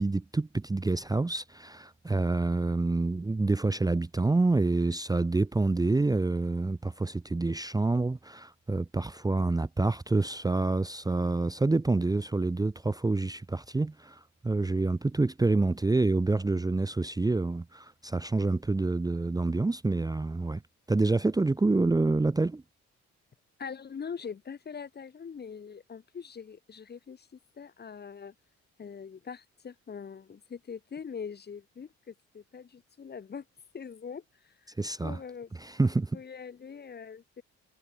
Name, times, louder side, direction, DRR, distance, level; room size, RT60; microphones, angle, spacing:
voice 1, 0.0-20.6 20.9-22.6 34.8-35.2 35.6-36.1, right 3 dB, 10° right, 0.7 m, -27 dB
voice 2, 23.6-28.3 28.8-33.4 33.7-34.7 35.0-35.5 36.1-37.4, left 6 dB, 35° left, 1.0 m, -42 dB
cardioid pair, 90°, 30 cm